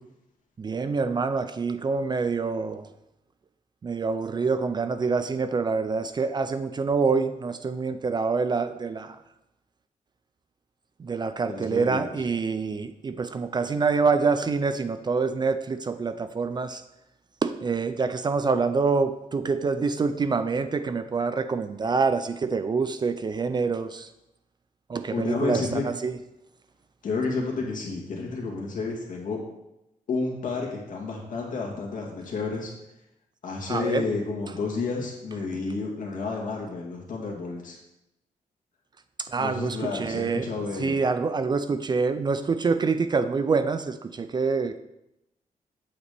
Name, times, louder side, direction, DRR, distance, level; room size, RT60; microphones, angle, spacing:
voice 1, 0.6-2.9 3.8-9.2 11.0-16.8 17.4-24.1 24.9-26.2 33.7-34.1 39.2-40.5 40.8-44.8, right 4 dB, 30° right, 10 dB, 0.4 m, -26 dB
voice 2, 11.5-12.1 25.1-25.8 27.0-29.4 30.1-32.7 33.4-37.8 39.4-41.0, left 4 dB, 65° left, -1 dB, 2.1 m, -30 dB
8.7 x 4.1 x 6.8 m, 0.89 s
wide cardioid pair, 145°, 14 cm